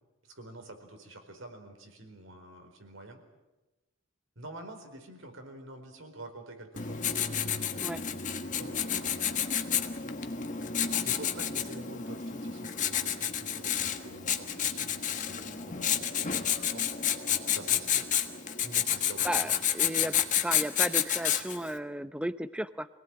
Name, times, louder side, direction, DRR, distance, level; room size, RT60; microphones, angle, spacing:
voice 1, 0.3-3.2 4.4-7.0 8.5-8.9 9.6-16.9 17.5-18.1 18.6-19.5, right 1 dB, 80° right, 5 dB, 4.6 m, -47 dB
Writing, 6.8-21.7, left 9 dB, 40° left, 1.5 m, -30 dB
voice 2, 19.2-20.1 20.4-22.9, right 1 dB, 5° right, 13 dB, 0.8 m, -34 dB
26.0 x 18.5 x 9.1 m, 1.1 s
head